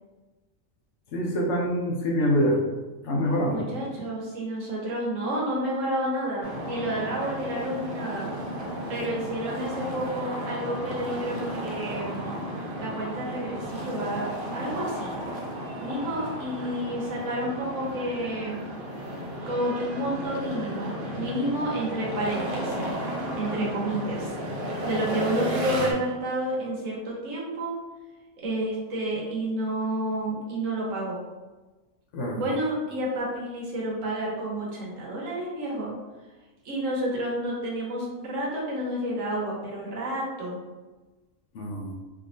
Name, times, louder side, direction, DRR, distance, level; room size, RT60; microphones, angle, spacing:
voice 1, 1.1-2.6 3.0-3.7 32.1-32.4 41.5-41.9, equal, 65° left, -2 dB, 0.9 m, -25 dB
voice 2, 3.5-8.3 8.9-12.3 12.8-15.2 15.8-18.7 19.5-22.9 23.3-24.3 24.8-27.8 28.4-31.2 32.3-35.9 36.6-40.6, right 1 dB, 70° right, -4 dB, 1.3 m, -30 dB
sound 1, 6.4-25.9, right 1 dB, 55° right, 0.6 m, -34 dB
3.4 x 2.7 x 2.5 m, 1.2 s
omnidirectional pair, 1.4 m